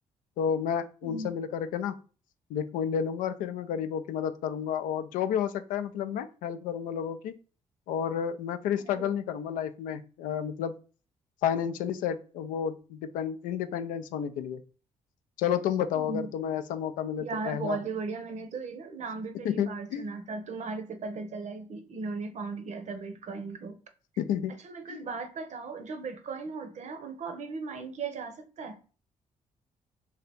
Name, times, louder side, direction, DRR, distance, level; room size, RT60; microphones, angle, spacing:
voice 1, 0.4-2.0 2.5-7.4 7.9-10.7 11.4-14.6 15.4-17.8 19.4-20.1 24.2-24.5 24.9-25.1, left 8 dB, 90° left, 0.4 m, -31 dB
voice 2, 8.8-9.1 15.9-16.3 17.2-23.8 24.6-28.8, right 4 dB, 60° right, 0.8 m, -37 dB
2.8 x 2.8 x 3.3 m
supercardioid pair, 65°, 14 cm